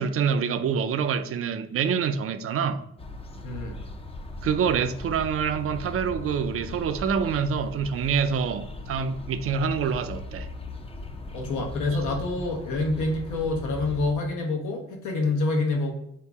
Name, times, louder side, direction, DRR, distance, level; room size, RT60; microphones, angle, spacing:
voice 1, 0.0-2.8 4.4-10.5, right 6 dB, 50° right, 0.4 m, -26 dB
sound 1, 3.0-14.1, left 2 dB, 20° left, 0.4 m, -39 dB
voice 2, 3.4-3.7 11.3-15.9, left 2 dB, 85° left, 1.0 m, -27 dB
3.9 x 2.8 x 3.4 m
cardioid pair, 90°, 30 cm